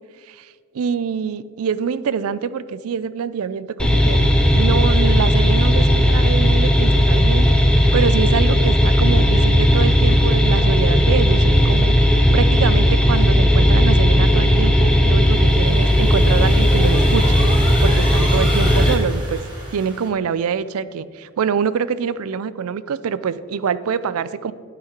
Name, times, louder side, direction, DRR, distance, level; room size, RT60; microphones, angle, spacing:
voice 1, 0.8-4.2 4.5-17.5 17.8-19.5 19.7-24.5, right 6 dB, 75° right, 16 dB, 0.4 m, -25 dB
sound 1, 3.8-18.9, equal, 5° left, 0.7 m, -15 dB
sound 2, 15.1-20.1, right 1 dB, 20° right, 2.1 m, -33 dB
11.5 x 6.1 x 4.4 m, 2.1 s
head